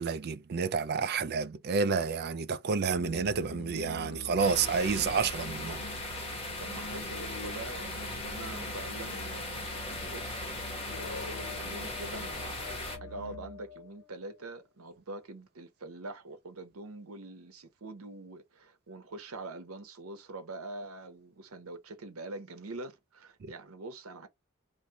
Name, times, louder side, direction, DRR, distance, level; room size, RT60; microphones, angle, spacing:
voice 1, 0.0-5.8 23.4-23.5, right 5 dB, 50° right, 0.4 m, -30 dB
Musical instrument, 2.9-13.7, equal, 60° left, 0.6 m, -44 dB
sound 1, 4.4-13.0, left 2 dB, 25° left, 1.2 m, -38 dB
voice 2, 6.6-10.5 11.4-24.3, right 2 dB, 90° right, 0.8 m, -44 dB
sound 2, 8.0-14.6, left 8 dB, 10° right, 1.4 m, -51 dB
3.1 x 2.6 x 2.7 m
head